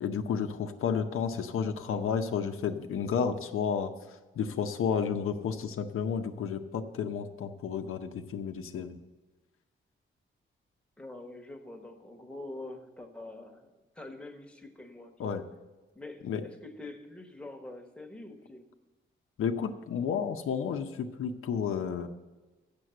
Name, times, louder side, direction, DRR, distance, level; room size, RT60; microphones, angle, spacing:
voice 1, 0.0-3.9 4.4-9.0 15.2-15.4 16.2-16.4 19.4-22.1, left 7 dB, 90° left, 6 dB, 0.7 m, -31 dB
voice 2, 11.0-15.4 15.9-18.7, left 2 dB, 5° left, 2 dB, 1.1 m, -45 dB
8.0 x 6.9 x 7.5 m, 1.2 s
wide cardioid pair, 125°, 21 cm